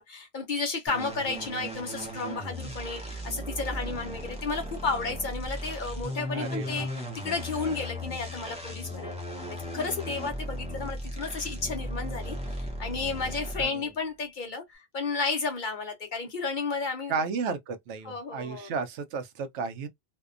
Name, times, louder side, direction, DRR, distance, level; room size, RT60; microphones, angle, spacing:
voice 1, 0.0-9.2 9.7-17.2 18.0-18.7, left 4 dB, 55° left, 0.6 m, -33 dB
sound 1, 0.9-13.8, equal, 10° right, 0.5 m, -36 dB
voice 2, 6.3-6.9 13.6-13.9 17.1-19.9, right 5 dB, 80° right, 0.9 m, -33 dB
2.6 x 2.1 x 2.4 m
omnidirectional pair, 1.2 m